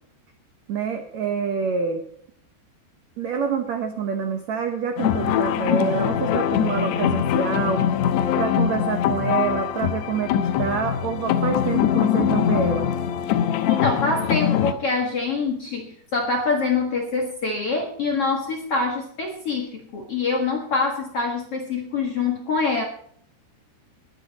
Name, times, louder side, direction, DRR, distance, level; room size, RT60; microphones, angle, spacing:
voice 1, 0.7-2.0 3.2-7.9 8.4-12.9, right 6 dB, 80° right, 6 dB, 1.6 m, -26 dB
sound 1, 5.0-14.7, left 10 dB, 80° left, 2.9 m, -22 dB
voice 2, 13.7-22.8, left 4 dB, 55° left, 1 dB, 1.7 m, -25 dB
21.5 x 9.0 x 4.1 m, 0.62 s
omnidirectional pair, 5.0 m